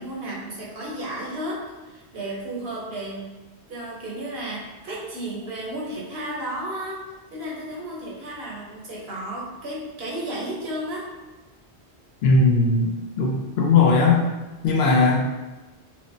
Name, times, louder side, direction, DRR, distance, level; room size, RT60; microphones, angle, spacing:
voice 1, 0.0-3.3 3.7-7.0 7.3-11.1, right 1 dB, 65° right, -4 dB, 1.1 m, -33 dB
voice 2, 12.2-12.9 13.2-14.2 14.6-15.2, left 3 dB, 70° left, -1 dB, 0.8 m, -18 dB
4.4 x 2.0 x 2.6 m, 1.1 s
omnidirectional pair, 1.1 m